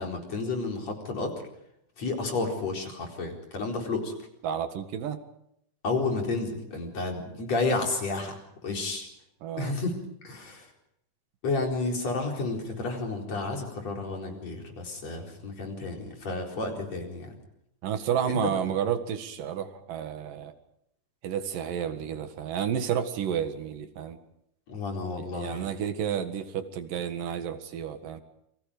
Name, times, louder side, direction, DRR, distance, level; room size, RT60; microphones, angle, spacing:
voice 1, 0.0-1.4 2.0-4.1 5.8-9.1 9.6-9.9 10.2-10.7 11.4-17.4 18.3-18.4 24.7-25.7, left 3 dB, 50° left, 1 dB, 5.4 m, -31 dB
voice 2, 4.4-5.2 9.4-9.7 17.8-20.5 21.2-24.2 25.2-28.2, right 8 dB, 85° right, 8 dB, 3.4 m, -31 dB
29.5 x 24.0 x 5.1 m, 0.76 s
omnidirectional pair, 3.8 m